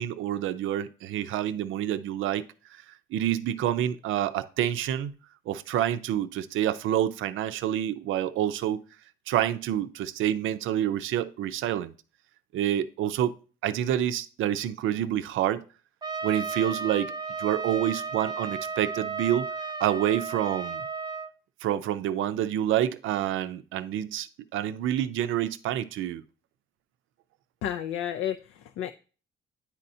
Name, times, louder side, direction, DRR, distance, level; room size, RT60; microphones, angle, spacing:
voice 1, 0.0-2.4 3.1-5.1 5.5-8.8 9.3-11.9 12.5-13.4 13.6-15.6 16.2-17.1 17.4-19.5 19.8-20.8 21.6-26.2, right 11 dB, 80° right, 0.5 m, -28 dB
Trumpet, 16.0-21.3, right 5 dB, 20° right, 0.5 m, -34 dB
voice 2, 27.6-28.9, left 10 dB, 85° left, 0.4 m, -31 dB
9.6 x 4.2 x 2.7 m
cardioid pair, 90°, 20 cm